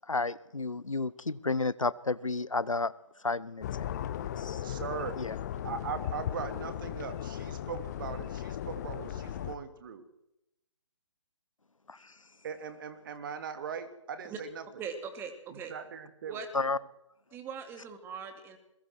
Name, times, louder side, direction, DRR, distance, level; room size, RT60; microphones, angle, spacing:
voice 1, 0.1-2.9 3.2-4.0 4.4-4.6 5.2-5.3 11.9-12.1 16.5-16.8, left 3 dB, 80° left, 20 dB, 0.9 m, -32 dB
sound 1, 3.6-9.5, left 10 dB, 35° left, 1.3 m, -37 dB
voice 2, 4.6-5.2 5.6-10.0 12.4-14.6 15.5-16.4, right 7 dB, 40° right, 10 dB, 2.5 m, -40 dB
voice 3, 14.8-15.7 16.3-16.5 17.3-18.6, right 6 dB, 15° right, 7 dB, 2.8 m, -40 dB
27.5 x 22.0 x 4.6 m, 0.85 s
figure-of-eight pair, 135°, 16 cm